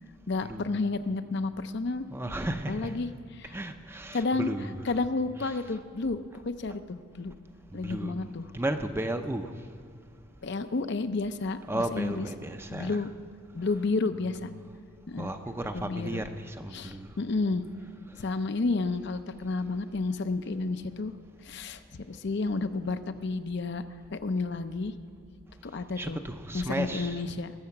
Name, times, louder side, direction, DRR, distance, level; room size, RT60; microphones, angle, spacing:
voice 1, 0.3-2.0 2.7-3.5 4.1-4.5 4.8-7.3 7.7-8.5 10.4-12.3 12.7-13.1 13.5-14.5 15.1-15.3 15.7-16.2 16.7-17.6 18.2-21.1 21.4-24.9 25.6-26.2 26.5-27.5, left 3 dB, 55° left, 10 dB, 0.6 m, -31 dB
voice 2, 2.1-3.0 3.5-4.9 5.4-5.5 7.7-9.5 11.7-13.0 15.2-17.1 26.0-27.2, right 1 dB, 10° right, 7 dB, 0.5 m, -34 dB
20.0 x 7.5 x 5.9 m, 2.4 s
head